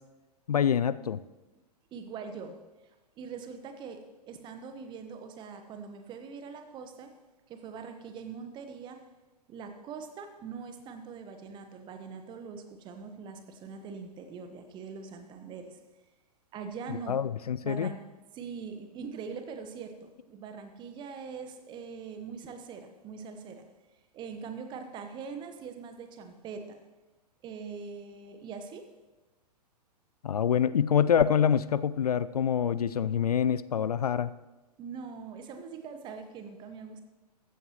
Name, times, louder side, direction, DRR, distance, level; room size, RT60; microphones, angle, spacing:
voice 1, 0.5-1.2 16.9-17.9 30.2-34.3, left 8 dB, 65° left, 17 dB, 0.4 m, -26 dB
voice 2, 1.9-2.6 3.2-4.0 4.3-7.1 7.5-9.0 9.5-15.8 16.5-17.2 17.6-18.0 18.3-23.6 24.1-26.8 27.4-28.9 34.8-37.0, right 5 dB, 20° right, 7 dB, 1.2 m, -42 dB
15.0 x 12.5 x 3.0 m, 1.1 s
figure-of-eight pair, 110°, 21 cm